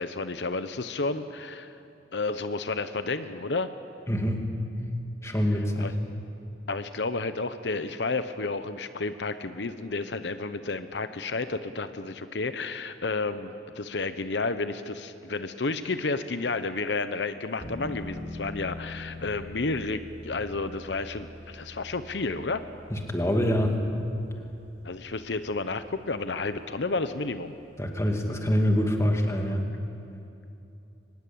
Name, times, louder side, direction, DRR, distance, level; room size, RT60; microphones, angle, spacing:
voice 1, 0.0-1.8 2.1-3.7 5.8-5.9 6.7-22.6 24.8-27.5, left 3 dB, 85° left, 11 dB, 0.9 m, -31 dB
voice 2, 4.1-4.5 5.2-5.9 22.9-23.8 27.8-29.7, equal, 15° left, 3 dB, 2.3 m, -25 dB
sound 1, 17.6-28.3, left 1 dB, 55° left, 7.1 m, -45 dB
23.5 x 20.5 x 8.7 m, 2.8 s
head